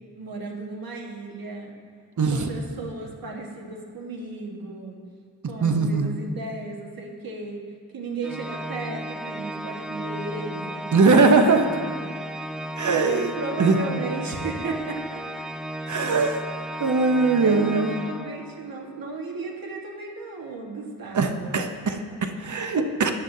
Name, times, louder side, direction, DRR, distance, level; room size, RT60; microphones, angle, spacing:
voice 1, 0.1-1.8 2.3-5.0 5.5-7.6 7.9-11.3 13.0-15.4 17.4-21.5, right 3 dB, 75° right, 0 dB, 1.5 m, -34 dB
voice 2, 2.2-2.5 5.4-6.2 10.9-11.8 12.7-13.3 13.6-13.8 15.9-16.4 16.8-18.0 21.1-23.1, right 4 dB, 55° right, 6 dB, 0.8 m, -21 dB
Organ, 8.2-18.8, right 1 dB, ahead, 0.3 m, -34 dB
14.0 x 9.7 x 2.7 m, 2.1 s
wide cardioid pair, 95°, 36 cm